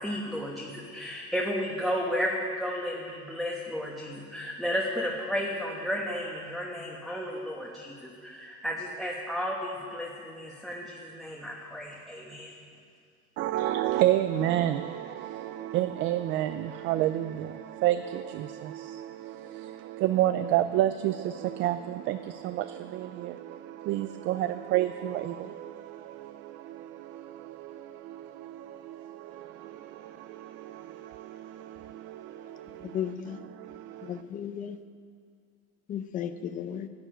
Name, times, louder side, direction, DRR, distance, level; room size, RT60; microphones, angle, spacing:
voice 1, 0.0-12.5, equal, ahead, -2 dB, 1.1 m, -33 dB
voice 2, 13.4-34.2, right 13 dB, 35° right, 11 dB, 0.4 m, -31 dB
voice 3, 32.8-33.4 34.0-34.8 35.9-36.9, left 9 dB, 25° left, 11 dB, 0.6 m, -34 dB
12.5 x 11.5 x 8.9 m, 2.2 s
cardioid pair, 165°, 32 cm